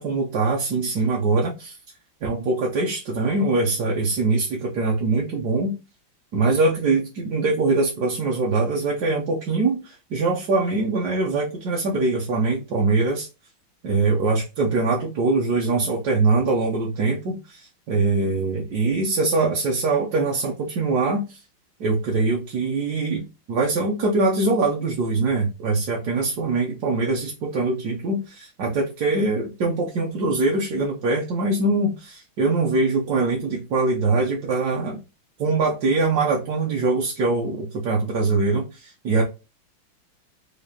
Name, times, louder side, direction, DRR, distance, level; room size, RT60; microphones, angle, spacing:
voice 1, 0.0-1.8 2.2-5.8 6.3-13.3 13.8-21.4 21.8-35.0 35.4-39.2, right 3 dB, 65° right, 1.1 m, -23 dB
4.9 x 2.4 x 2.7 m
omnidirectional pair, 2.2 m